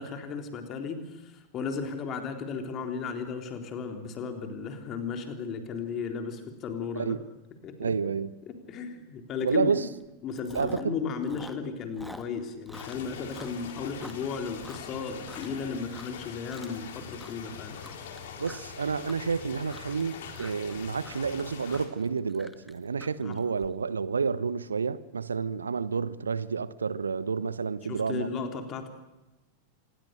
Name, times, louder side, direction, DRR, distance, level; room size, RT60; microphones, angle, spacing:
voice 1, 0.0-7.2 7.6-8.0 8.5-9.8 10.2-17.8 23.2-23.4 27.9-28.9, left 5 dB, 30° left, 3.8 m, -35 dB
voice 2, 7.8-8.3 9.4-9.9 10.5-10.9 18.4-28.3, right 5 dB, 75° right, 0.9 m, -30 dB
Chewing mastication, 9.5-9.7 10.0-11.0 11.2-15.6 15.9-16.3 16.5-16.9 17.2-23.7, left 1 dB, 5° left, 1.8 m, -47 dB
sound 1, 12.7-21.9, left 7 dB, 60° left, 3.8 m, -43 dB
27.0 x 20.5 x 6.7 m
figure-of-eight pair, 90°, 0 cm